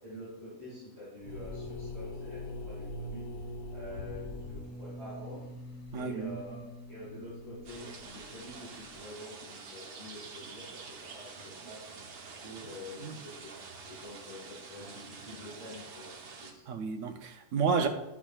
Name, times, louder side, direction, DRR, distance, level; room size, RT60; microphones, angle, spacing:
voice 1, 0.0-2.4 2.7-3.2 3.7-5.4 5.9-6.6 6.9-10.8 11.1-11.9 12.4-13.5 13.8-16.1 16.4-16.6, left 1 dB, 30° right, 2.7 m, -47 dB
sound 1, 1.2-9.0, left 1 dB, 75° left, 1.7 m, -43 dB
voice 2, 5.9-6.3 13.0-13.2 16.7-17.9, right 5 dB, 65° right, 0.9 m, -31 dB
sound 2, 7.7-16.5, right 4 dB, 85° right, 1.4 m, -47 dB
10.5 x 6.0 x 2.4 m
omnidirectional pair, 1.5 m